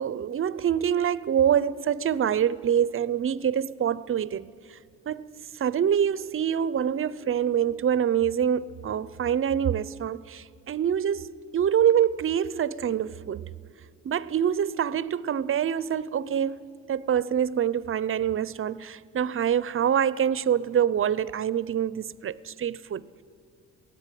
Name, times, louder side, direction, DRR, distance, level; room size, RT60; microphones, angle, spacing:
voice 1, 0.0-4.8 5.1-5.3 5.5-13.5 14.0-23.2, right 9 dB, 45° right, 0.6 m, -26 dB
22.5 x 16.5 x 9.2 m
cardioid pair, 90°, 30 cm